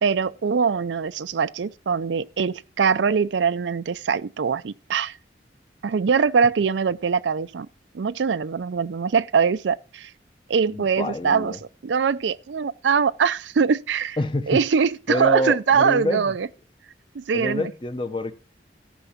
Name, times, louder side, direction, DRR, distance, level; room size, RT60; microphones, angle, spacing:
voice 1, 0.0-5.2 5.8-7.7 7.9-10.1 10.5-11.6 11.8-14.2 14.5-16.5 17.1-17.7, right 6 dB, 85° right, 0.5 m, -22 dB
voice 2, 10.7-11.6 14.2-14.6 15.1-16.3 17.3-18.3, left 1 dB, 30° left, 0.9 m, -27 dB
13.5 x 6.0 x 5.7 m
head